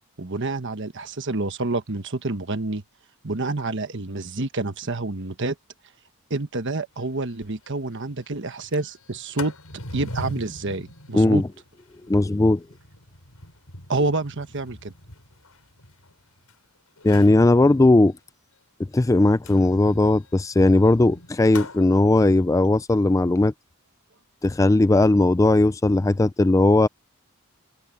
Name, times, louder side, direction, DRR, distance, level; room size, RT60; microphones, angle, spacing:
voice 1, 0.2-2.8 3.2-5.5 6.3-9.5 9.9-11.4 13.9-14.9, right 2 dB, 55° right, 1.3 m, -28 dB
Sliding door, 7.0-7.1 7.4-7.5 7.8-8.1 8.5-16.5 17.0-17.4 19.4-21.8, left 2 dB, 80° left, 7.0 m, -41 dB
voice 2, 12.1-12.6 17.0-18.1 18.9-23.5 24.4-26.9, left 2 dB, 15° left, 0.3 m, -18 dB
open air
head